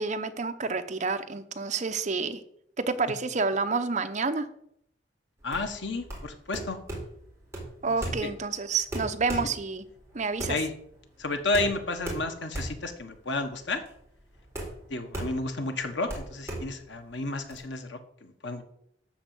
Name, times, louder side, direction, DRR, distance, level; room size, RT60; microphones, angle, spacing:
voice 1, 0.0-2.4 2.8-4.5 7.8-9.8 10.1-10.6, right 4 dB, 40° right, 10 dB, 0.8 m, -29 dB
voice 2, 5.4-6.8 7.8-8.3 10.5-10.7 11.2-13.8 14.9-18.6, left 2 dB, 85° left, 7 dB, 1.5 m, -32 dB
sound 1, 5.4-17.6, right 1 dB, 15° right, 3.8 m, -38 dB
12.5 x 4.6 x 7.6 m, 0.72 s
head